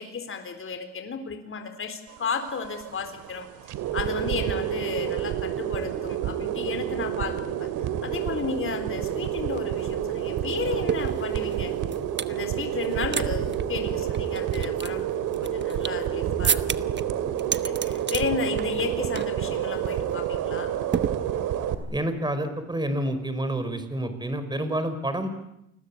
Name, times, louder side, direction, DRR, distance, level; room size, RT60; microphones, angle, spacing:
voice 1, 0.0-3.5 3.9-7.7 8.0-11.7 12.3-15.1 15.4-16.9 17.5-20.7, left 5 dB, 45° left, 7 dB, 3.9 m, -33 dB
sound 1, 2.1-21.7, right 10 dB, 90° right, 2.5 m, -29 dB
sound 2, 9.1-9.2 9.4-12.4 12.8-13.3 13.5-13.6 14.1-16.1 16.4-17.0 17.4-18.2 18.6-18.9 19.2-19.4 19.7-20.0 20.9-21.7, right 7 dB, 35° right, 1.2 m, -31 dB
voice 2, 21.9-25.3, right 1 dB, 15° right, 10 dB, 5.2 m, -28 dB
29.0 x 21.0 x 8.6 m, 0.80 s
cardioid pair, 90°, 30 cm